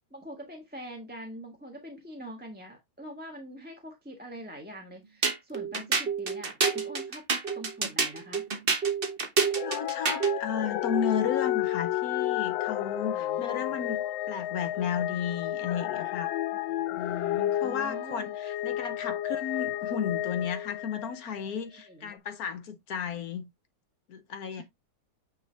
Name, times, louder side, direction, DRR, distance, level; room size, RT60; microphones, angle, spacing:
voice 1, 0.1-7.2 7.5-8.5 13.0-13.8 16.6-17.0 17.6-18.3 21.7-22.2 24.5-24.6, equal, 5° right, 1.1 m, -44 dB
sound 1, 5.2-10.4, right 5 dB, 35° right, 1.1 m, -28 dB
sound 2, 9.6-21.5 22.1-22.2, left 13 dB, 85° left, 1.3 m, -31 dB
voice 2, 9.6-16.3 16.9-23.5 24.1-24.6, left 7 dB, 60° left, 1.1 m, -34 dB
9.1 x 3.5 x 3.3 m
omnidirectional pair, 2.1 m